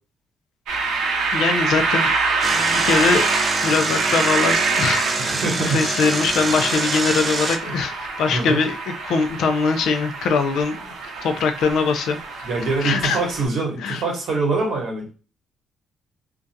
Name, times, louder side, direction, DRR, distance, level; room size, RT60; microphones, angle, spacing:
sound 1, 0.7-13.5, right 4 dB, 85° right, 0.6 m, -25 dB
voice 1, 1.3-2.1 2.5-3.3 3.6-12.5 12.8-13.2 13.8-14.0, left 4 dB, 80° left, 7 dB, 0.4 m, -22 dB
Engine, 2.4-7.6, right 3 dB, 35° right, 0.3 m, -26 dB
voice 2, 5.2-5.8 7.6-7.7 8.3-8.6 12.4-15.1, right 3 dB, 70° right, 0 dB, 1.0 m, -24 dB
2.4 x 2.2 x 2.6 m, 0.37 s
cardioid pair, 90°, 0 cm